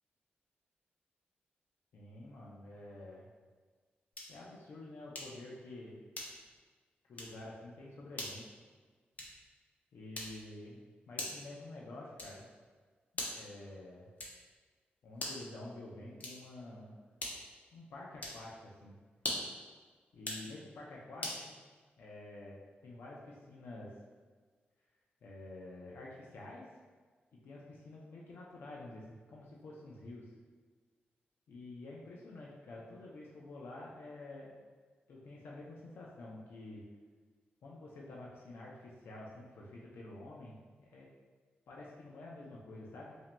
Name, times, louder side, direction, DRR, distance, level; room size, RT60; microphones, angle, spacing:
voice 1, 1.9-3.3 4.3-6.0 7.1-8.6 9.9-12.5 13.3-14.1 15.0-17.0 17.7-19.0 20.1-21.6 22.0-23.9 25.2-26.7 27.3-30.3 31.5-34.5 35.1-36.8 37.6-41.1 41.7-43.1, left 2 dB, 90° left, -4 dB, 0.6 m, -49 dB
sound 1, 4.1-4.5 5.1-5.5 6.1-6.6 7.1-7.4 8.1-8.4 9.1-9.5 10.1-10.6 11.2-11.5 12.2-12.5 13.1-13.5 14.2-14.5 15.1-15.5 16.2-16.6 17.2-17.6 18.2-18.5 19.1-19.6 20.1-20.5 21.2-21.5, left 1 dB, 45° left, 0.8 m, -42 dB
5.6 x 2.7 x 2.2 m, 1.5 s
wide cardioid pair, 100°, 4 cm